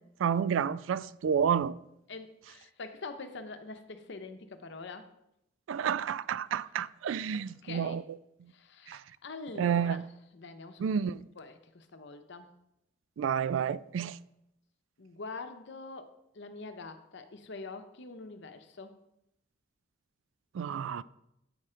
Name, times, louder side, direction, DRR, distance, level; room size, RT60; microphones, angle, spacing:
voice 1, 0.2-1.7 5.7-8.0 8.9-9.0 9.6-10.0 10.8-11.2 13.2-14.2 20.5-21.0, right 7 dB, 80° right, 0.3 m, -30 dB
voice 2, 2.1-5.1 7.3-8.0 8.5-10.0 10.3-10.8 11.4-12.5 15.0-19.0, left 3 dB, 65° left, 0.7 m, -44 dB
8.8 x 5.0 x 4.3 m
head